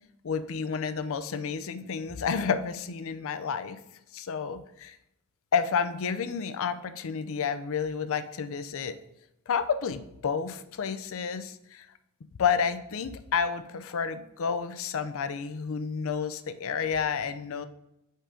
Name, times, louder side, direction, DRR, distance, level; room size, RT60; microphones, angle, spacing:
voice 1, 0.2-3.8 4.1-5.0 5.5-9.0 9.5-11.9 12.4-17.7, left 6 dB, 65° left, 11 dB, 0.5 m, -30 dB
5.4 x 3.7 x 4.9 m, 0.83 s
head